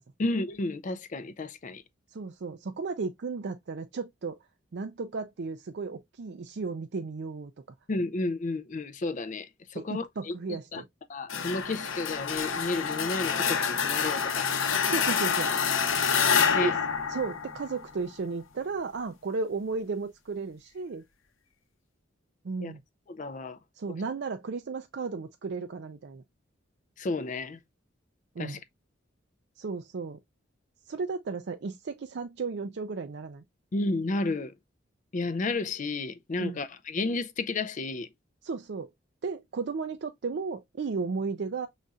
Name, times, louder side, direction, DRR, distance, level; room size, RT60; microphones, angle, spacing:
voice 1, 0.2-1.8 7.9-10.8 11.1-14.5 16.5-16.8 22.6-22.7 23.1-23.6 23.9-24.0 27.0-27.6 28.4-28.6 33.7-34.5 35.1-38.1, left 2 dB, 40° left, 0.4 m, -32 dB
voice 2, 2.1-4.4 4.7-7.5 9.7-10.8 14.9-15.5 16.6-16.8 17.1-21.0 22.4-22.8 23.8-26.2 28.4-28.6 29.6-30.2 30.9-33.4 36.4-36.6 38.4-38.9 39.2-41.7, right 4 dB, 55° right, 0.4 m, -34 dB
sound 1, 11.3-18.0, left 6 dB, 85° left, 0.7 m, -27 dB
5.1 x 4.0 x 2.3 m
head